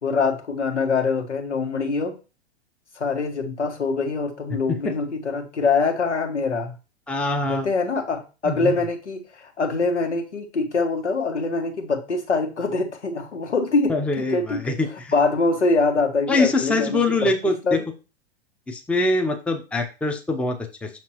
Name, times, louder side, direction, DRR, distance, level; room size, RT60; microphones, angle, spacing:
voice 1, 0.0-2.1 2.9-6.7 7.5-17.8, left 3 dB, 90° left, 3 dB, 1.7 m, -24 dB
voice 2, 7.1-7.7 8.4-8.7 13.9-15.1 16.3-17.8 18.7-20.9, left 2 dB, 5° left, 4 dB, 0.6 m, -24 dB
6.2 x 5.9 x 3.0 m, 0.31 s
hypercardioid pair, 115°, 34 cm